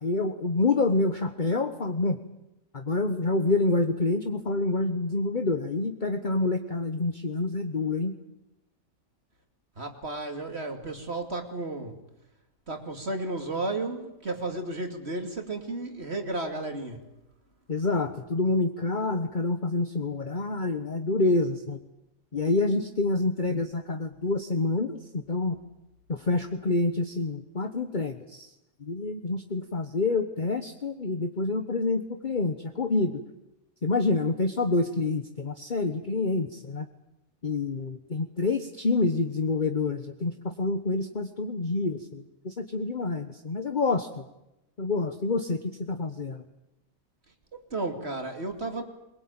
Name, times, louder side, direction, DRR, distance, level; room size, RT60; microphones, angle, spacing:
voice 1, 0.0-2.2 2.7-8.1 17.7-21.8 22.3-25.6 26.1-28.5 28.8-33.2 33.8-36.9 37.4-44.2 44.8-46.4, left 3 dB, 35° left, 7 dB, 1.4 m, -27 dB
voice 2, 9.8-12.0 12.7-17.0 47.3-48.8, right 2 dB, 50° right, 5 dB, 2.9 m, -33 dB
23.0 x 22.0 x 8.9 m, 0.91 s
omnidirectional pair, 1.4 m